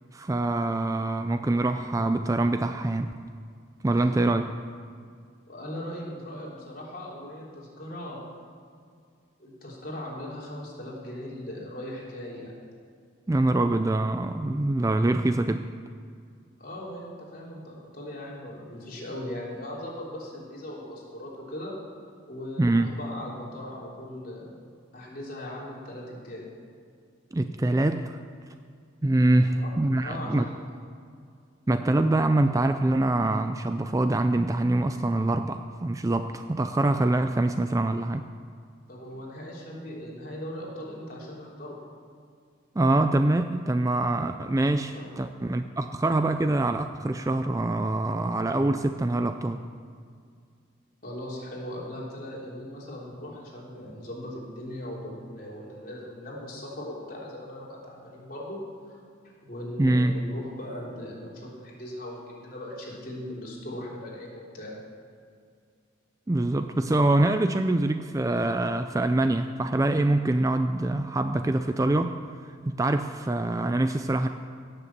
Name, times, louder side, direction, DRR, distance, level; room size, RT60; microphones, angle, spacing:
voice 1, 0.1-3.2 3.8-4.7 13.3-15.7 22.6-22.9 27.3-28.2 29.0-30.5 31.7-38.2 42.8-49.6 59.8-60.2 66.3-72.2 72.7-74.3, right 2 dB, 15° right, 8 dB, 0.3 m, -24 dB
voice 2, 5.5-8.2 9.4-12.5 16.6-21.7 22.3-24.5 24.9-26.4 29.6-29.7 30.0-30.5 38.9-41.8 44.9-45.1 51.0-59.0 59.2-64.7, left 1 dB, 45° left, -4 dB, 3.4 m, -39 dB
17.5 x 6.7 x 7.4 m, 2.2 s
head